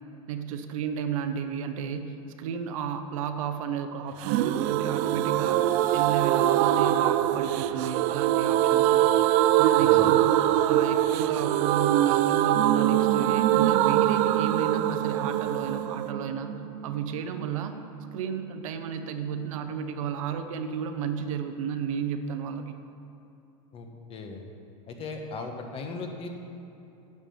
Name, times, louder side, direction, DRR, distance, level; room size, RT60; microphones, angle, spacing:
voice 1, 0.3-9.1 9.6-16.5 16.8-17.7 18.1-22.8, right 7 dB, 80° right, 8 dB, 0.9 m, -33 dB
sound 1, 4.2-17.8 18.1-18.2 18.4-18.5, right 13 dB, 50° right, 0.4 m, -23 dB
voice 2, 9.8-10.2 23.7-24.4 24.9-26.3, left 3 dB, 35° left, 3 dB, 1.3 m, -37 dB
10.5 x 5.9 x 7.0 m, 2.9 s
supercardioid pair, 125°, 17 cm